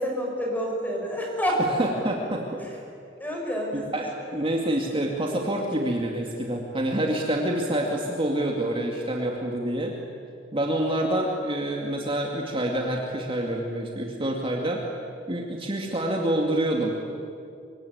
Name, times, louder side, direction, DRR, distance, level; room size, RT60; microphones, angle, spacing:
voice 1, 0.0-1.6 3.2-3.9 4.3-4.4, equal, 10° left, 0 dB, 6.4 m, -28 dB
voice 2, 1.6-2.7 3.7-9.9 10.5-14.8 15.3-16.9, right 1 dB, 30° right, 0 dB, 2.4 m, -27 dB
25.5 x 23.5 x 9.5 m, 2.5 s
head